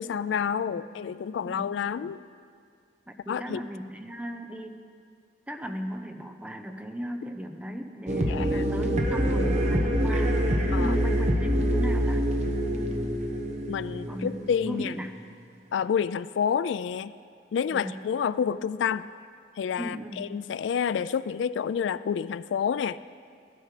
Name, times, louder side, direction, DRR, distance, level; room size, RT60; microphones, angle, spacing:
voice 1, 0.0-2.2 3.3-3.6 8.3-8.7 10.7-11.0 13.7-14.9 15.7-17.1 17.5-19.1 19.6-23.0, left 7 dB, 75° left, 16 dB, 0.3 m, -29 dB
voice 2, 1.3-1.7 3.1-4.8 5.5-10.4 10.8-12.3 14.1-14.3 14.6-15.2 17.7-18.0 19.8-20.3, equal, 5° right, 5 dB, 0.9 m, -37 dB
sound 1, 8.1-15.0, equal, 40° right, 1.3 m, -26 dB
15.5 x 12.5 x 4.9 m, 2.3 s
head